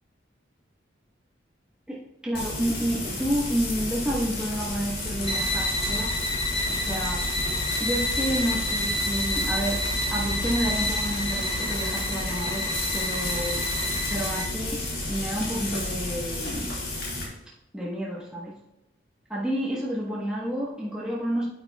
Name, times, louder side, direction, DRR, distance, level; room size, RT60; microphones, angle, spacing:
voice 1, 1.9-6.1 6.7-7.2 7.8-9.8 10.1-13.6 14.1-14.8 15.1-16.7 17.7-18.6 19.3-21.4, equal, 5° right, -6 dB, 1.1 m, -30 dB
Frying (food), 2.3-17.2, left 2 dB, 55° left, 3.0 m, -31 dB
sound 1, 5.2-14.6, left 1 dB, 35° left, 1.4 m, -30 dB
9.6 x 8.8 x 2.3 m, 0.94 s
head